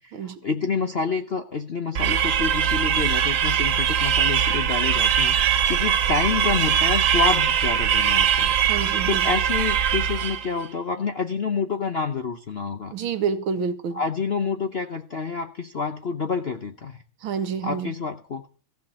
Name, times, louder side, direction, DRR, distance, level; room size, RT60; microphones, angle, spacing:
voice 1, 0.0-12.9 13.9-17.0 17.6-18.5, left 5 dB, 55° left, 0.7 m, -28 dB
sound 1, 1.9-10.5, right 8 dB, 60° right, 0.9 m, -21 dB
voice 2, 8.7-9.3 12.9-14.0 17.2-17.9, right 6 dB, 85° right, 2.0 m, -28 dB
15.0 x 5.9 x 8.6 m
omnidirectional pair, 2.2 m